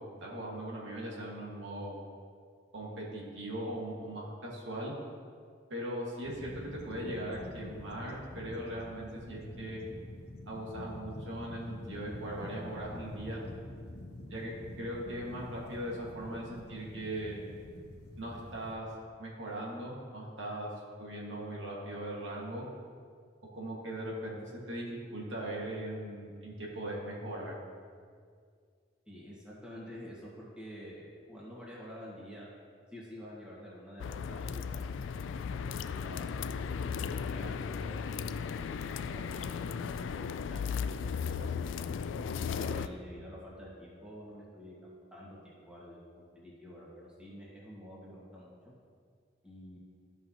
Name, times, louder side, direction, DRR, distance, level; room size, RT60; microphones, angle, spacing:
voice 1, 0.0-2.0 2.7-4.9 5.7-9.8 10.5-13.4 14.3-14.5 14.8-17.4 18.2-18.9 19.2-20.7 21.0-22.7 23.5-27.6, right 1 dB, 80° right, -4 dB, 1.8 m, -39 dB
sound 1, 6.2-18.8, left 1 dB, 60° left, 0.7 m, -46 dB
voice 2, 29.1-32.5 32.9-36.3 36.8-38.7 39.0-40.1 40.5-40.8 41.2-42.0 42.5-48.5 49.4-49.8, equal, 5° right, -7 dB, 1.7 m, -49 dB
sound 2, 34.0-42.9, left 6 dB, 85° left, 0.3 m, -36 dB
13.5 x 5.5 x 2.9 m, 2.1 s
head